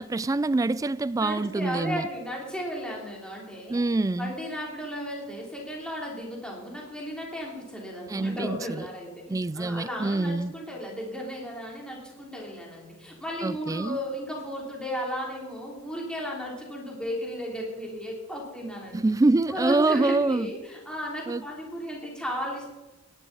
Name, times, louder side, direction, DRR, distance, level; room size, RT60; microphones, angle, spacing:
voice 1, 0.0-2.1 3.7-4.4 8.1-8.9 9.3-10.5 13.4-14.0 18.9-20.5 21.3-21.4, right 2 dB, 15° right, 0.3 m, -25 dB
voice 2, 1.2-3.8 4.2-19.0 19.5-22.7, equal, 5° left, 3.1 m, -35 dB
17.5 x 11.5 x 4.0 m
head